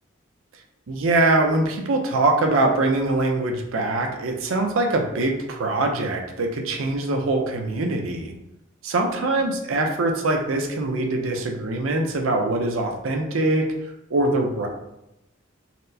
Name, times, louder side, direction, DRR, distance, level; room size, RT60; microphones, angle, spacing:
voice 1, 0.9-8.3 8.8-13.7 14.1-14.7, right 2 dB, 80° right, 2 dB, 0.5 m, -23 dB
4.2 x 2.1 x 2.7 m, 0.87 s
head